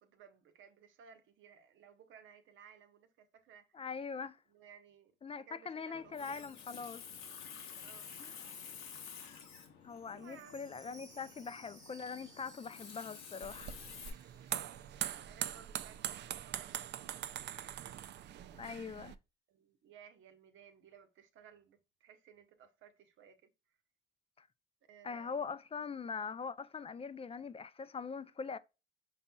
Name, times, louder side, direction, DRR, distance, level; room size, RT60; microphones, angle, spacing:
voice 1, 0.0-3.8 4.5-5.1 5.4-6.5 7.8-8.1 10.1-10.7 11.1-11.4 14.3-14.7 15.2-18.6 19.5-23.5 24.9-25.5, right 7 dB, 80° right, 0.9 m, -59 dB
voice 2, 3.7-4.4 5.2-7.0 8.2-8.5 9.8-13.8 18.5-19.1 24.4-24.5 25.0-28.6, left 5 dB, 30° left, 0.4 m, -42 dB
Water tap faucet, 5.9-14.1, left 7 dB, 90° left, 1.1 m, -51 dB
Chime, 9.8-15.8 16.1-16.2 16.8-16.9, right 2 dB, 20° right, 1.1 m, -60 dB
sound 1, 13.4-19.1, right 11 dB, 60° right, 0.4 m, -42 dB
5.4 x 4.1 x 2.2 m
cardioid pair, 90°, 20 cm